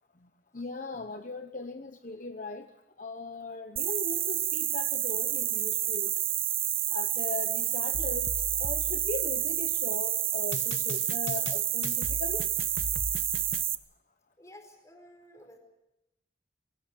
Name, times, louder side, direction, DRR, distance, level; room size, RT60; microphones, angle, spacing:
voice 1, 0.5-2.7 3.0-6.1 6.9-12.5, left 3 dB, 45° left, 7 dB, 0.9 m, -39 dB
sound 1, 3.8-13.8, right 11 dB, 30° right, 0.7 m, -29 dB
sound 2, 7.9-9.8 10.5-13.6, left 3 dB, 70° left, 0.7 m, -40 dB
voice 2, 14.4-15.6, left 1 dB, 15° left, 4 dB, 4.6 m, -52 dB
22.0 x 18.5 x 7.8 m, 0.89 s
head